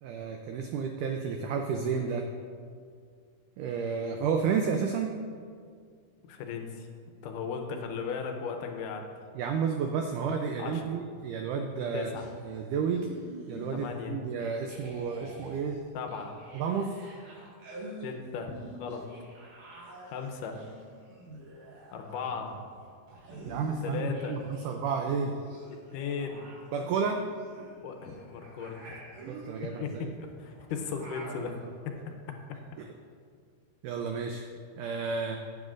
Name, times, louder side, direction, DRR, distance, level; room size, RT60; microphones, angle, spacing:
voice 1, 0.0-2.3 3.6-5.1 9.4-12.1 12.4-13.1 13.5-15.8 16.5-17.0 23.5-25.3 26.7-27.2 29.3-30.1 32.8-32.9 33.8-34.4 34.7-35.4, right 6 dB, 85° right, 4 dB, 1.8 m, -31 dB
voice 2, 6.2-6.9 7.2-9.1 10.6-10.9 11.9-12.3 13.7-14.2 15.9-16.3 18.0-19.1 20.0-20.6 21.9-22.6 23.8-24.4 25.9-26.4 27.8-29.0 29.8-31.6 31.9-32.0, left 6 dB, 75° left, 4 dB, 2.0 m, -36 dB
sound 1, 12.1-14.1 14.4-24.7 24.9-31.8, right 1 dB, 60° right, 2.9 m, -47 dB
16.5 x 7.7 x 2.5 m, 2.1 s
omnidirectional pair, 4.3 m